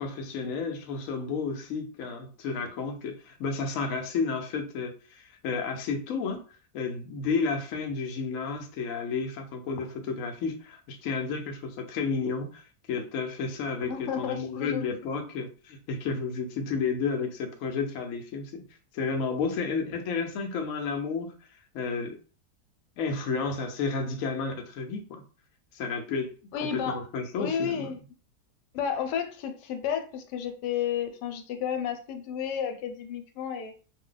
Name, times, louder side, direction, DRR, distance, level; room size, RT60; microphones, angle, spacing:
voice 1, 0.0-6.4 6.7-18.5 18.9-21.3 21.7-22.2 23.0-25.2 25.7-26.3 26.6-27.9, left 4 dB, 65° left, 0.9 m, -31 dB
voice 2, 13.9-14.8 26.5-27.0 27.4-28.0 28.7-33.7, left 8 dB, 90° left, 1.2 m, -32 dB
2.6 x 2.2 x 3.8 m
omnidirectional pair, 1.7 m